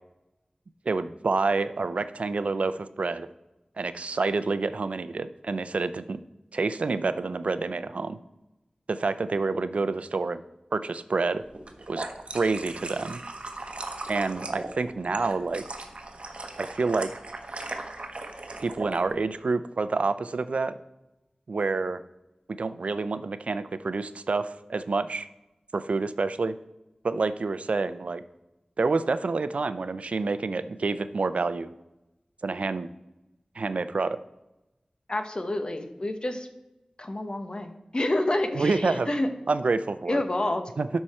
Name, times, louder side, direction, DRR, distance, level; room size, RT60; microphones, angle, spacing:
voice 1, 0.9-3.3 3.8-6.2 6.5-8.2 8.9-10.4 10.7-11.4 11.9-12.0 12.3-13.2 14.1-15.6 16.6-17.1 18.6-20.7 21.5-22.0 22.6-25.3 25.7-26.5 27.0-28.2 28.8-31.7 32.4-32.9 33.6-34.2 38.5-39.1 39.5-40.2 40.8-40.9, right 3 dB, 80° right, 13 dB, 0.5 m, -28 dB
sound 1, 11.5-19.0, right 2 dB, 65° right, 1.1 m, -38 dB
voice 2, 35.1-36.5 37.0-39.3 40.1-40.6, left 1 dB, 45° left, 7 dB, 1.1 m, -28 dB
12.5 x 5.6 x 4.3 m, 0.95 s
wide cardioid pair, 60°, 2 cm